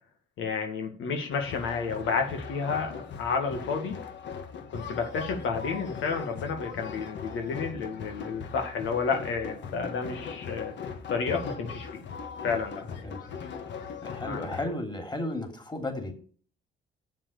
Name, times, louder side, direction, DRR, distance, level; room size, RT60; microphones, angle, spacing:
voice 1, 0.4-4.0 4.7-10.7 11.1-12.0 12.4-12.8 14.2-14.6, left 5 dB, 85° left, 4 dB, 2.1 m, -31 dB
sound 1, 1.3-14.6, left 5 dB, 65° left, 1.6 m, -40 dB
voice 2, 14.0-16.1, left 1 dB, 20° left, 5 dB, 3.2 m, -34 dB
7.8 x 7.4 x 6.7 m, 0.42 s
cardioid pair, 90°, 20 cm